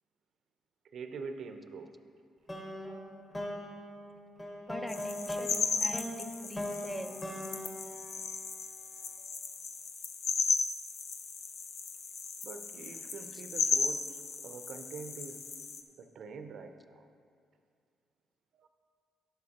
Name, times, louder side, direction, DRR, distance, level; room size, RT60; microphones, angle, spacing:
voice 1, 0.9-1.9 12.4-15.4 16.0-17.1 18.5-18.7, right 4 dB, 65° right, 7 dB, 0.7 m, -45 dB
sound 1, 2.5-8.9, left 1 dB, 20° left, 1.6 m, -40 dB
voice 2, 4.7-6.1 6.4-7.1, equal, ahead, 6 dB, 0.5 m, -42 dB
sound 2, 4.9-15.8, left 5 dB, 65° left, 0.7 m, -36 dB
12.5 x 11.0 x 2.9 m, 2.4 s
cardioid pair, 90°, 0 cm